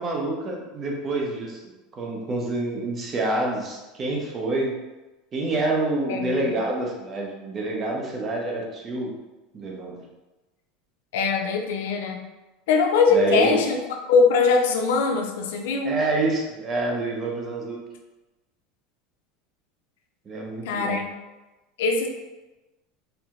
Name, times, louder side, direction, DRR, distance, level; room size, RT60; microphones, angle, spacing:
voice 1, 0.0-1.6 1.9-4.7 5.3-9.1 9.5-10.0 13.1-13.6 15.8-17.8 20.3-21.0, right 2 dB, 25° right, -1 dB, 0.6 m, -27 dB
voice 2, 6.1-6.5 11.1-12.2 12.7-13.8 14.1-16.0 20.6-21.0 21.8-22.1, left 4 dB, 85° left, 3 dB, 0.5 m, -21 dB
4.4 x 2.0 x 3.6 m, 1.1 s
supercardioid pair, 165°, 0 cm